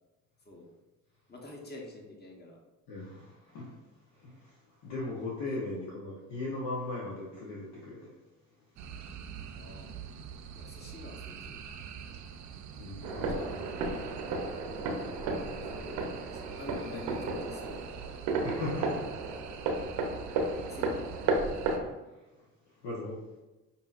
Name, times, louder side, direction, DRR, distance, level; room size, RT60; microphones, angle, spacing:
voice 1, 1.3-2.6 5.0-5.1 5.5-5.9 9.6-9.9 10.6-11.6 13.1-13.4 15.7-17.9 19.3-19.6 20.7-21.1, left 2 dB, 25° left, 0 dB, 1.1 m, -46 dB
voice 2, 2.9-3.7 4.2-4.4 4.8-8.0 12.8-13.6 18.4-19.1 20.5-20.8 22.8-23.2, left 2 dB, 75° left, -5 dB, 1.0 m, -38 dB
sound 1, 8.8-21.8, right 7 dB, 50° right, 0.5 m, -45 dB
sound 2, 13.0-21.9, right 3 dB, 85° right, 0.7 m, -33 dB
5.3 x 2.7 x 2.4 m, 1.1 s
supercardioid pair, 70°, 37 cm